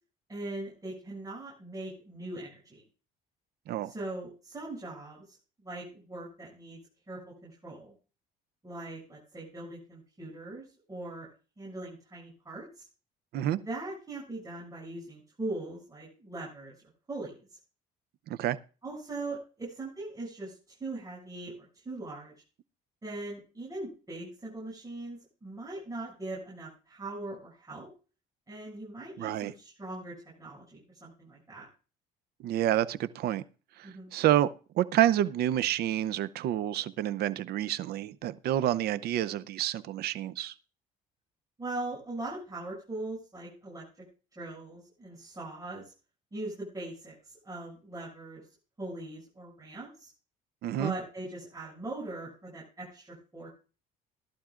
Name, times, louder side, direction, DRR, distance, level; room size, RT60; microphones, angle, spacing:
voice 1, 0.3-2.8 3.8-5.4 5.6-6.8 7.1-7.9 8.6-11.3 11.6-12.7 13.5-16.7 17.1-17.5 18.8-20.5 20.8-22.3 23.0-27.9 28.5-31.7 33.8-34.1 41.6-43.8 44.4-45.9 46.3-48.4 48.8-50.1 50.8-53.5, right 2 dB, 20° right, -6 dB, 7.0 m, -40 dB
voice 2, 18.3-18.6 29.2-29.5 32.4-33.4 33.8-34.5 34.8-40.5 50.6-50.9, right 12 dB, 70° right, 16 dB, 0.7 m, -28 dB
17.5 x 11.5 x 2.5 m, 0.35 s
cardioid pair, 110°, 17 cm